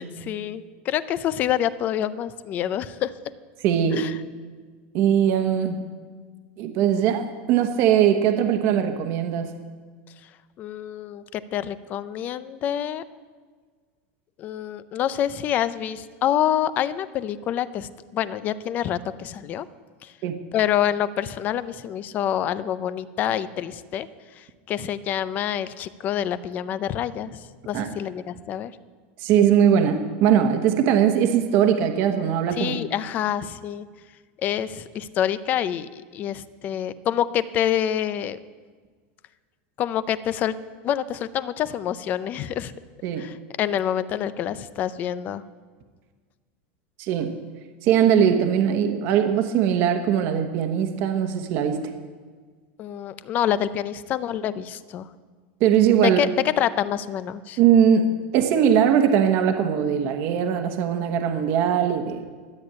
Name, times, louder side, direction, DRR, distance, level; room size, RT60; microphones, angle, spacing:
voice 1, 0.0-3.1 3.9-4.2 10.6-13.0 14.4-19.7 20.0-20.1 20.5-24.1 24.4-28.7 32.5-33.9 34.4-38.4 39.8-40.5 40.8-42.7 43.2-45.4 52.8-55.1 56.0-57.6, left 10 dB, 30° left, 15 dB, 0.5 m, -27 dB
voice 2, 3.6-4.1 4.9-5.8 6.6-9.5 20.2-20.4 27.7-27.9 29.2-32.7 43.0-43.3 47.0-47.4 47.8-51.8 55.6-56.2 57.6-58.1 58.3-62.2, right 9 dB, 40° right, 6 dB, 1.1 m, -20 dB
13.0 x 8.7 x 8.7 m, 1.5 s
supercardioid pair, 165°, 6 cm